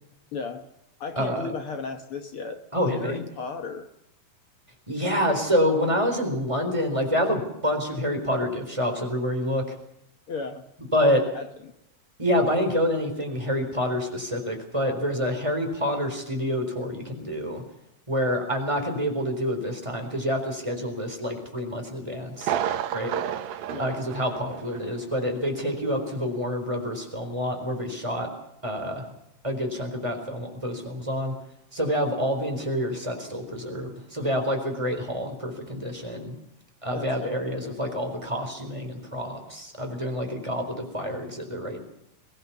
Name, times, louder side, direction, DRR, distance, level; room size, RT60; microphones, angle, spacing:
voice 1, 0.3-0.6 1.0-2.6 2.9-3.9 10.3-10.6 11.0-11.7 23.7-24.0 36.9-37.3 37.6-38.1, left 4 dB, 60° left, 7 dB, 1.4 m, -35 dB
voice 2, 1.2-1.5 2.7-3.2 4.9-9.6 10.9-11.2 12.2-17.6 18.1-22.5 22.9-23.1 23.8-28.3 28.6-29.1 29.4-31.3 31.7-36.3 36.8-41.8, equal, 10° right, 3 dB, 3.8 m, -27 dB
Thunder, 22.4-25.0 25.2-25.3 25.9-26.0, right 10 dB, 90° right, 2.9 m, -31 dB
23.5 x 17.5 x 7.2 m, 0.81 s
omnidirectional pair, 4.0 m